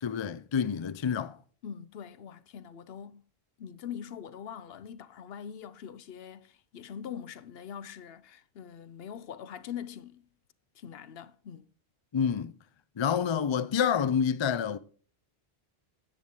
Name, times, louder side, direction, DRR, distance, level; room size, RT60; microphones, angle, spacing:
voice 1, 0.0-1.4 12.1-12.5 13.0-14.8, left 7 dB, 40° left, 0.4 m, -28 dB
voice 2, 1.6-3.3 3.6-10.3 10.7-11.7, left 8 dB, 70° left, 0.9 m, -43 dB
10.0 x 9.0 x 3.7 m
omnidirectional pair, 1.1 m